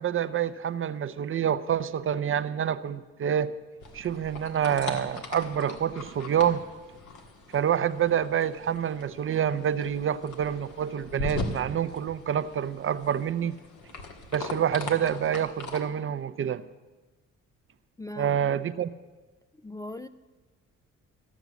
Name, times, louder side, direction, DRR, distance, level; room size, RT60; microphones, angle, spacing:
voice 1, 0.0-3.5 3.9-6.7 7.5-13.6 14.3-16.6 18.2-18.9, right 9 dB, 45° right, 0.5 m, -27 dB
sound 1, 3.8-15.8, left 2 dB, 75° left, 1.6 m, -40 dB
voice 2, 18.0-18.6 19.6-20.1, left 1 dB, 10° left, 0.3 m, -40 dB
14.5 x 6.1 x 8.1 m
cardioid pair, 90°, 30 cm